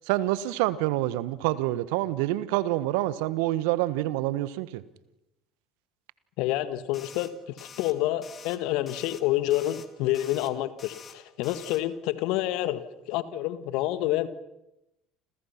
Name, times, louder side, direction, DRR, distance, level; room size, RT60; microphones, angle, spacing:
voice 1, 0.1-4.8, right 16 dB, 70° right, 16 dB, 1.3 m, -27 dB
voice 2, 6.4-7.3 7.6-12.8 13.1-14.3, left 15 dB, 65° left, 12 dB, 1.7 m, -28 dB
sound 1, 6.9-7.3 7.6-7.9 8.2-8.6 8.9-9.2 9.5-9.9 10.1-10.5 10.8-11.2 11.4-11.8, left 7 dB, 40° left, 2.8 m, -46 dB
30.0 x 27.0 x 5.9 m, 0.90 s
hypercardioid pair, 65°, 0 cm